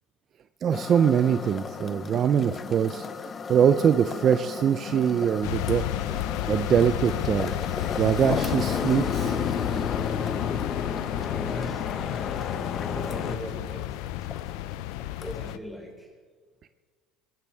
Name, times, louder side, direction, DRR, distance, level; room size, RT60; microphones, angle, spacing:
voice 1, 0.6-3.1 3.5-5.8 6.5-7.5 8.0-9.4, right 8 dB, 45° right, 11 dB, 0.6 m, -23 dB
sound 1, 0.7-15.5, left 5 dB, 30° left, 0.9 m, -37 dB
sound 2, 5.4-15.6, left 14 dB, 80° left, 0.5 m, -32 dB
Boat Water vehicle, 8.2-13.4, left 6 dB, 45° left, 1.3 m, -31 dB
voice 2, 11.3-14.5 15.2-16.1, equal, ahead, -1 dB, 4.9 m, -41 dB
22.0 x 16.5 x 3.6 m, 1.5 s
supercardioid pair, 100°, 0 cm